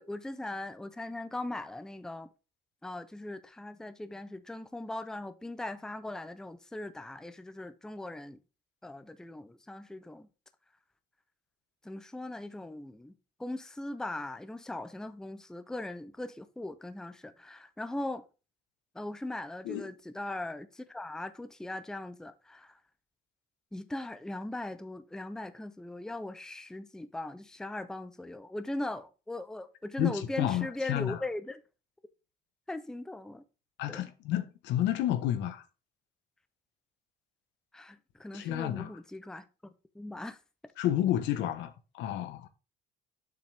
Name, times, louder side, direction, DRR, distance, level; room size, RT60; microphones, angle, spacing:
voice 1, 0.0-2.3 2.8-8.4 8.8-10.3 11.8-13.1 13.4-18.2 18.9-22.8 23.7-31.6 32.7-33.4 33.9-34.1 37.7-40.4, left 1 dB, 5° left, 0.5 m, -39 dB
voice 2, 30.0-31.2 33.8-35.6 38.3-38.9 40.8-42.5, left 12 dB, 80° left, 1.1 m, -31 dB
7.3 x 5.9 x 3.4 m
cardioid pair, 120°, 18 cm